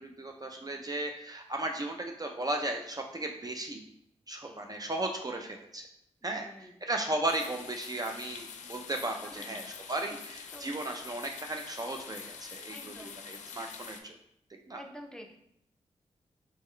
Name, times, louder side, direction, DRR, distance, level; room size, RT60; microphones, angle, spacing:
voice 1, 0.0-3.8 4.3-5.8 6.2-14.2 14.7-14.8, right 2 dB, 30° right, 3 dB, 0.5 m, -36 dB
voice 2, 6.2-6.7 9.2-9.7 10.0-10.2 10.5-10.8 12.7-13.2 14.7-15.3, equal, 5° left, 3 dB, 0.7 m, -49 dB
sound 1, 7.3-14.0, left 6 dB, 80° left, 0.4 m, -46 dB
3.6 x 3.2 x 3.2 m, 0.74 s
supercardioid pair, 45°, 12 cm